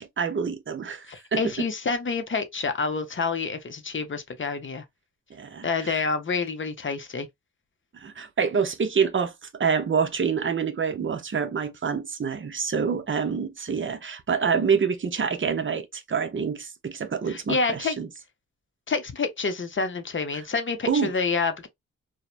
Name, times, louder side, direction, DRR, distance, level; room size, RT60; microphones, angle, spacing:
voice 1, 0.0-1.7 5.3-6.0 7.9-18.1 20.9-21.1, right 6 dB, 40° right, 0.6 m, -27 dB
voice 2, 1.1-4.8 5.6-7.3 17.3-18.0 18.9-21.7, left 4 dB, 40° left, 0.6 m, -28 dB
3.0 x 2.1 x 2.3 m
cardioid pair, 70°, 32 cm